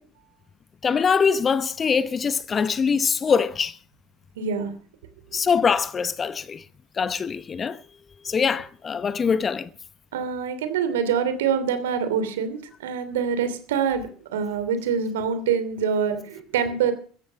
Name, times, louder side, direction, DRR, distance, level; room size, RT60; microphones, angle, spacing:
voice 1, 0.8-3.8 5.3-6.6 7.0-7.8 8.2-9.7, left 6 dB, 30° left, 0.9 m, -23 dB
voice 2, 4.4-4.7 10.1-16.9, right 7 dB, 75° right, 2.8 m, -25 dB
15.0 x 14.5 x 6.3 m
hypercardioid pair, 80°, 0 cm